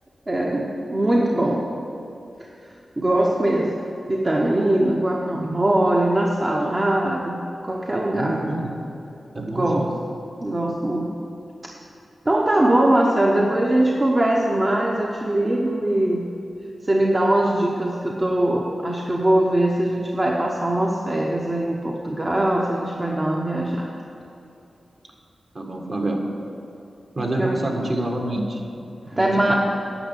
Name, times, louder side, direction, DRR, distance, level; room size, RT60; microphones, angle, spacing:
voice 1, 0.3-1.8 3.0-8.5 9.4-10.1 10.4-11.2 12.2-16.3 16.8-23.9 27.4-27.7 29.1-29.5, right 1 dB, 30° right, -1 dB, 0.9 m, -21 dB
voice 2, 8.1-8.7 9.3-10.0 25.5-26.3 27.1-29.5, right 1 dB, 50° right, 1 dB, 1.7 m, -27 dB
10.0 x 5.9 x 8.3 m, 2.8 s
cardioid pair, 60°, 0 cm